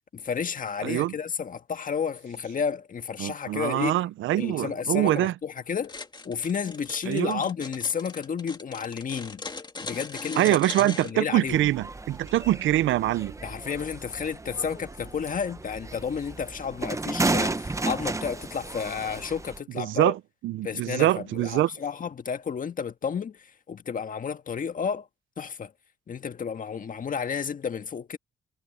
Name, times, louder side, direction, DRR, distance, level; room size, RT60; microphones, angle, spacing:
voice 1, 0.1-4.0 4.4-6.0 6.3-9.4 9.8-11.7 13.4-20.1 20.6-25.1 25.4-25.7 26.1-28.2, left 6 dB, 45° left, 1.6 m, -32 dB
voice 2, 0.8-1.1 3.2-5.3 7.1-7.4 10.4-13.4 19.8-21.7, right 14 dB, 75° right, 0.6 m, -24 dB
sound 1, 5.8-11.1, left 3 dB, 20° left, 2.2 m, -39 dB
sound 2, 11.5-19.6, right 2 dB, 15° right, 1.0 m, -33 dB
cardioid pair, 90°, 20 cm